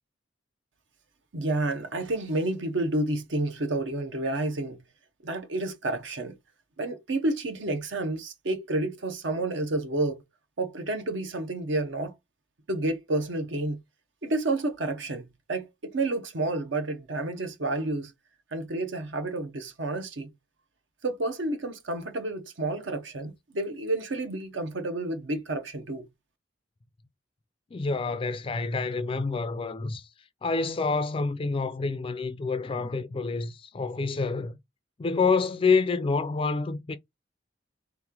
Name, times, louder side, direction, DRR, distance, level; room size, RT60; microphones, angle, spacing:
voice 1, 1.3-4.8 5.2-6.4 6.8-10.2 10.6-12.1 12.7-13.8 14.2-18.1 18.5-20.3 21.0-26.1, right 2 dB, 70° right, 0.7 m, -30 dB
voice 2, 27.7-30.1 30.4-34.6 35.0-37.0, left 4 dB, 30° left, 0.3 m, -27 dB
3.4 x 3.0 x 3.6 m
head